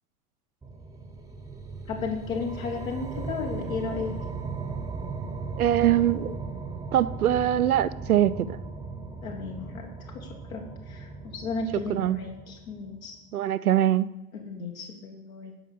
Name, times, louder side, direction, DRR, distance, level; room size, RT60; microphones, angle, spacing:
sound 1, 0.6-13.1, right 4 dB, 10° right, 0.9 m, -37 dB
voice 1, 1.9-4.1 9.2-9.9 10.1-13.2 14.5-15.5, left 4 dB, 70° left, 1.6 m, -34 dB
voice 2, 5.6-6.4 6.9-8.6 11.9-12.2 13.3-14.1, right 11 dB, 80° right, 0.6 m, -23 dB
11.5 x 5.4 x 7.0 m
figure-of-eight pair, 90°, 43 cm